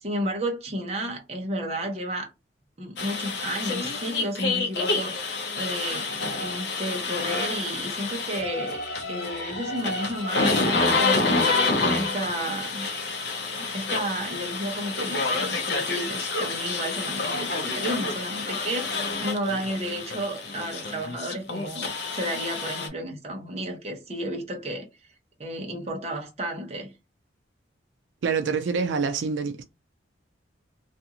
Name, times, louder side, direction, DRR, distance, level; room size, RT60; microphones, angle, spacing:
voice 1, 0.0-2.3 2.8-6.1 6.4-8.8 9.1-11.4 11.8-12.9 13.6-24.9 25.4-26.9, right 1 dB, 35° right, 0.7 m, -32 dB
sound 1, 3.0-22.9, left 3 dB, 65° left, 0.6 m, -28 dB
voice 2, 28.2-29.6, right 5 dB, 85° right, 0.4 m, -26 dB
2.5 x 2.4 x 2.8 m
head